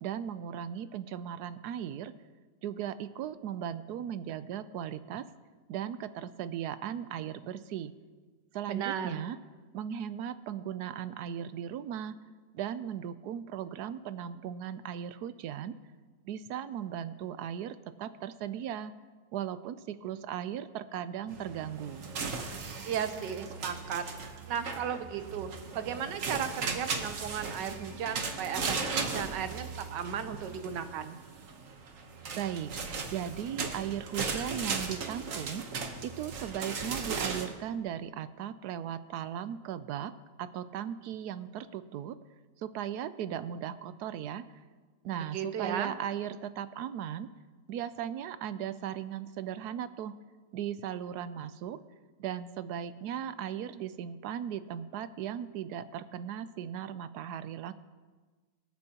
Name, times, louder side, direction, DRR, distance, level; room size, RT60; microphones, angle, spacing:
voice 1, 0.0-2.1 2.6-5.3 5.7-7.9 8.5-9.4 9.7-12.2 12.5-15.7 16.2-18.9 19.3-22.1 32.3-32.7 33.1-35.7 36.0-40.1 40.4-42.2 42.6-44.4 45.0-47.3 47.7-50.2 50.5-51.8 52.2-57.7, right 10 dB, 75° right, 13 dB, 1.1 m, -37 dB
voice 2, 8.7-9.2 22.8-24.0 24.5-31.2 45.3-45.9, right 8 dB, 90° right, 9 dB, 1.5 m, -35 dB
sound 1, 21.3-37.5, right 4 dB, 55° right, 1.3 m, -37 dB
24.5 x 9.0 x 2.9 m, 1.4 s
omnidirectional pair, 1.8 m